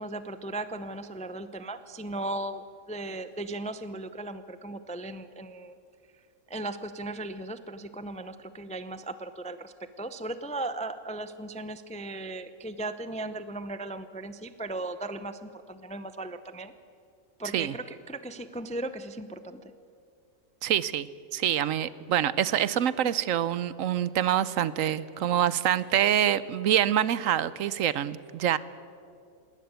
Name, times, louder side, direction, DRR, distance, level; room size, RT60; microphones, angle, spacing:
voice 1, 0.0-5.7 6.5-16.7 17.4-19.7, right 2 dB, 10° left, 12 dB, 0.4 m, -37 dB
voice 2, 20.6-28.6, right 10 dB, 75° right, 17 dB, 1.1 m, -26 dB
20.5 x 17.5 x 8.2 m, 2.4 s
omnidirectional pair, 1.4 m